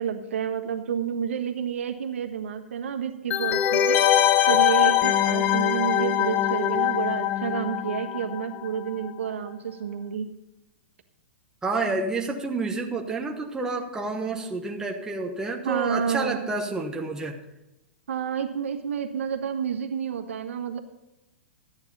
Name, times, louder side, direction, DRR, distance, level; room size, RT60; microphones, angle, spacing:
voice 1, 0.0-4.2 4.5-10.3 15.6-16.5 18.1-20.8, right 7 dB, 80° right, 6 dB, 1.4 m, -29 dB
sound 1, 3.3-8.8 9.0-9.1, left 11 dB, 25° left, 0.5 m, -22 dB
voice 2, 11.6-17.4, right 3 dB, 10° right, 1 dB, 1.2 m, -29 dB
13.5 x 9.6 x 4.1 m, 0.95 s
hypercardioid pair, 140°, 7 cm